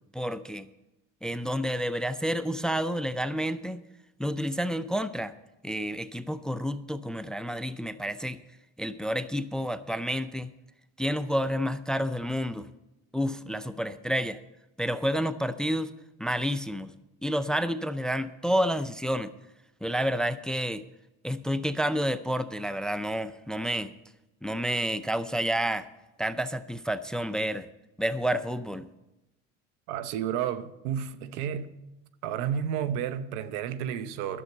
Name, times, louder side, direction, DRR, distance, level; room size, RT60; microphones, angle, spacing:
voice 1, 0.1-0.7 1.2-3.8 4.2-5.3 5.6-8.4 8.8-10.5 11.0-12.7 13.1-14.4 14.8-15.9 16.2-16.9 17.2-19.3 19.8-20.8 21.2-23.9 24.4-25.9 26.2-27.7 28.0-28.9, equal, ahead, 0.5 m, -29 dB
voice 2, 29.9-31.8 32.2-34.4, right 9 dB, 80° right, 0.9 m, -31 dB
11.0 x 7.1 x 7.9 m
supercardioid pair, 95°, 33 cm